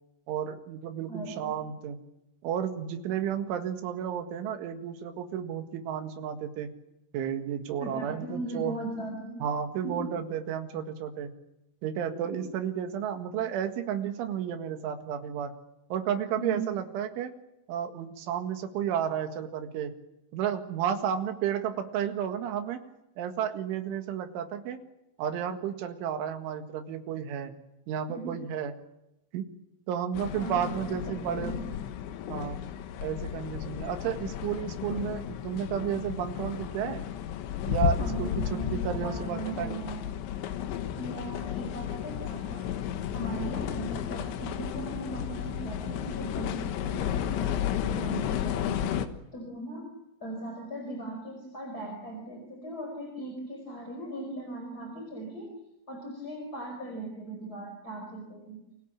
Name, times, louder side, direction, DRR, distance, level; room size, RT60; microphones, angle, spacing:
voice 1, 0.3-2.0 2.4-6.7 7.1-8.8 9.4-11.3 11.8-15.5 15.9-17.3 17.7-19.9 20.3-22.8 23.2-24.8 25.2-27.6 27.9-28.7 29.3-29.5 29.9-31.6 32.3-32.6 33.0-37.1 37.6-39.8, right 9 dB, 75° right, 7 dB, 4.2 m, -32 dB
voice 2, 1.1-1.5 7.8-9.4 9.8-10.1 12.0-12.4 16.4-16.7 28.1-28.3 30.3-31.6 38.0-40.1 40.9-42.7 43.1-48.9 49.3-49.9 50.2-55.5 55.9-58.6, right 2 dB, 20° left, 3 dB, 4.8 m, -38 dB
sound 1, 30.1-49.1, left 10 dB, 75° left, 3.6 m, -33 dB
29.5 x 24.5 x 7.4 m, 0.87 s
omnidirectional pair, 5.7 m